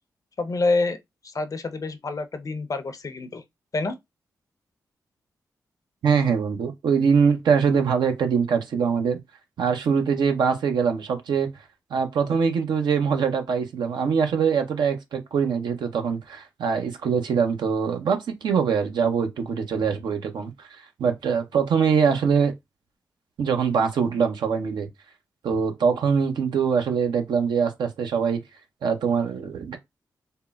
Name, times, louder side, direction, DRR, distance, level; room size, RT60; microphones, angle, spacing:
voice 1, 0.4-1.0 1.2-3.4 3.7-4.0, left 3 dB, 50° left, 0.5 m, -27 dB
voice 2, 6.0-9.2 9.6-11.5 11.9-20.7 21.0-22.5 23.4-24.9 25.4-28.4 28.8-29.8, right 6 dB, 80° right, 0.6 m, -23 dB
3.6 x 2.0 x 2.2 m
supercardioid pair, 45°, 8 cm